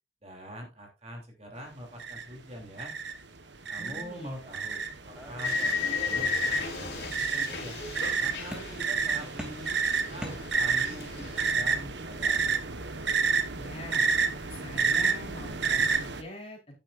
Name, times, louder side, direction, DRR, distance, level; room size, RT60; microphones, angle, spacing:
voice 1, 0.2-2.9 3.7-7.8 8.2-9.8 10.1-12.4, equal, 35° right, 1 dB, 3.2 m, -44 dB
sound 1, 2.0-2.2 2.8-3.2 3.6-16.2, right 5 dB, 70° right, 1.3 m, -30 dB
voice 2, 3.8-4.4 13.5-14.1 14.5-16.7, left 1 dB, 30° left, -1 dB, 3.9 m, -44 dB
sound 2, 5.1-6.5 6.8-7.6 8.5-9.0 9.4-11.0, equal, 5° right, 2.9 m, -44 dB
sound 3, 5.4-9.4 9.6-11.5, left 6 dB, 60° left, 3.7 m, -34 dB
11.5 x 10.0 x 2.6 m, 0.26 s
head